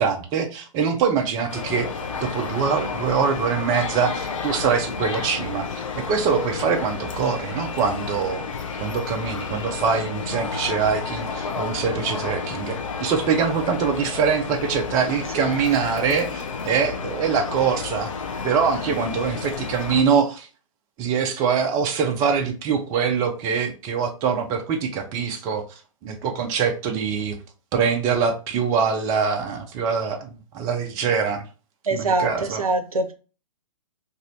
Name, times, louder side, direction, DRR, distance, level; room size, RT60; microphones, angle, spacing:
voice 1, 0.0-1.9 2.2-8.4 8.8-18.1 18.4-20.5 21.0-25.6 26.0-27.4 27.7-31.4 31.9-32.6, right 6 dB, 20° right, 0.4 m, -24 dB
sound 1, 1.5-20.0, left 5 dB, 60° left, 0.6 m, -31 dB
voice 2, 31.9-33.1, right 3 dB, 80° right, 0.6 m, -23 dB
3.0 x 2.6 x 2.6 m
figure-of-eight pair, 120°, 18 cm